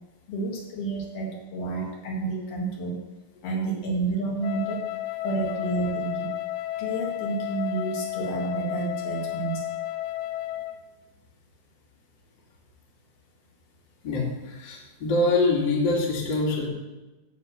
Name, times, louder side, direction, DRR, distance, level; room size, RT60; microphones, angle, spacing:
voice 1, 0.3-3.0 3.4-4.9 5.2-6.4 6.8-9.7, right 3 dB, 65° left, -2 dB, 3.5 m, -30 dB
Wind instrument woodwind instrument, 4.4-10.8, left 14 dB, 85° left, 2.1 m, -32 dB
voice 2, 14.0-16.7, left 2 dB, 30° left, -3 dB, 2.5 m, -24 dB
9.5 x 7.2 x 7.8 m, 1.1 s
omnidirectional pair, 4.8 m